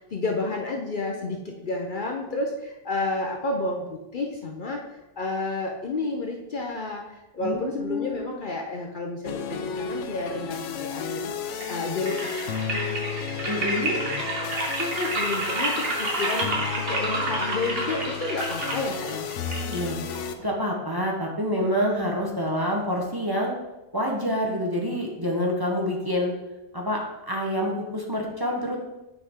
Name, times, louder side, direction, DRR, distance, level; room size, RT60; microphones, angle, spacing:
voice 1, 0.0-12.3 14.8-16.5 16.8-19.3, left 2 dB, 50° left, 1 dB, 0.8 m, -31 dB
voice 2, 7.4-8.2 13.5-14.0 19.7-20.0 20.4-23.5 23.9-26.3 26.7-28.8, equal, 20° right, -1 dB, 0.9 m, -27 dB
sound 1, 9.2-20.3, left 7 dB, 80° left, 0.9 m, -33 dB
sound 2, 11.5-20.5, right 2 dB, 55° right, 1.5 m, -30 dB
8.8 x 4.7 x 3.6 m, 0.99 s
omnidirectional pair, 1.2 m